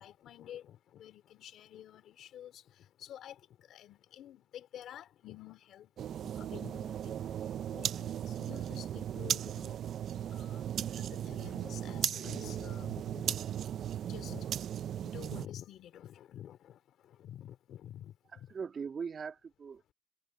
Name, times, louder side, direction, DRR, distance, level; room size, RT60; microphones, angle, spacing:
voice 1, 0.0-5.9 6.3-7.3 7.7-9.8 10.3-10.7 10.9-13.3 14.0-14.5 15.0-16.8 17.0-18.5, left 11 dB, 75° left, 2.7 m, -49 dB
sound 1, 6.0-15.5, right 10 dB, 65° right, 0.5 m, -37 dB
voice 2, 18.3-19.9, right 6 dB, 45° right, 1.8 m, -41 dB
cardioid pair, 90°, 0 cm